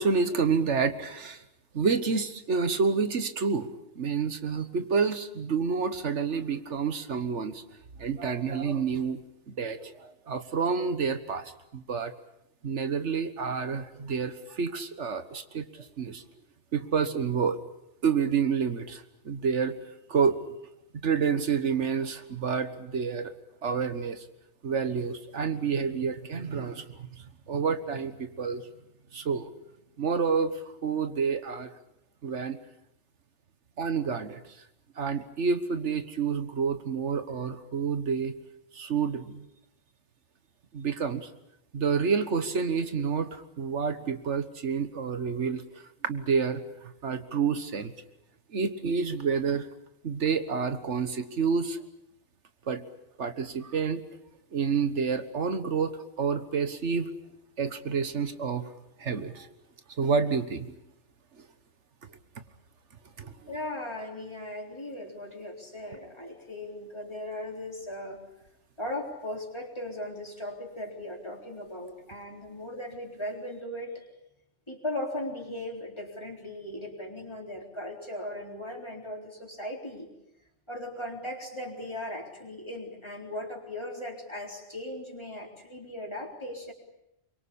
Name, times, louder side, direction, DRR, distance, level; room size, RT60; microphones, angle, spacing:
voice 1, 0.0-1.4 1.7-3.7 3.9-7.6 8.0-9.2 9.5-12.1 12.6-16.2 16.7-17.6 18.0-19.7 20.1-20.4 21.0-23.3 23.6-24.2 24.6-27.0 27.5-28.6 29.1-29.5 30.0-31.7 32.2-32.6 33.8-34.4 35.0-38.3 38.7-39.5 40.7-41.3 41.7-45.6 46.1-46.6 47.0-47.9 48.5-49.7 50.0-51.8 52.7-52.8 53.2-54.0 54.5-57.1 57.6-58.7 59.0-59.5 60.0-60.7 63.2-63.5, right 5 dB, 85° right, 10 dB, 1.7 m, -29 dB
voice 2, 63.5-68.2 68.8-74.1 74.7-80.1 80.7-86.7, left 1 dB, 25° left, 1 dB, 4.1 m, -38 dB
24.0 x 23.0 x 8.6 m, 0.84 s
omnidirectional pair, 1.2 m